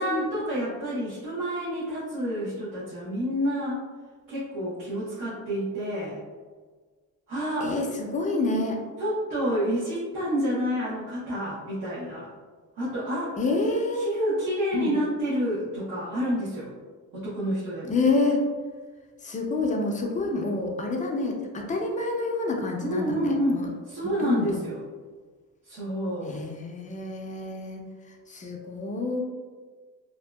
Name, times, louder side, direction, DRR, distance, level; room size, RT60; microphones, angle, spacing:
voice 1, 0.0-3.8 4.3-6.2 7.3-7.7 9.0-12.3 12.8-13.4 14.0-16.7 17.1-17.9 22.8-24.8 25.6-26.4, equal, 75° right, -10 dB, 0.9 m, -29 dB
voice 2, 7.6-8.8 13.4-14.1 14.7-15.0 17.9-18.4 19.2-23.7 24.2-24.6 26.2-27.8 28.3-29.2, left 3 dB, 25° left, 1 dB, 0.4 m, -28 dB
2.7 x 2.2 x 2.2 m, 1.5 s
cardioid pair, 110°, 33 cm